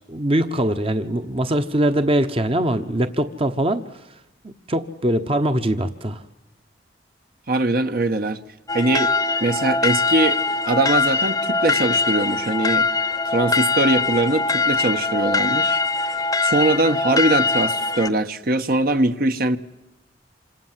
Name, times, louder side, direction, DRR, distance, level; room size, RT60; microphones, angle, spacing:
voice 1, 0.1-3.8 4.4-6.2, right 1 dB, 30° right, 1.1 m, -22 dB
voice 2, 7.5-8.4 8.7-9.1 9.4-12.9 13.3-16.1 16.4-19.6, right 2 dB, 55° right, 1.2 m, -22 dB
sound 1, 8.7-18.1, left 3 dB, 20° left, 0.9 m, -22 dB
27.5 x 26.0 x 7.5 m
head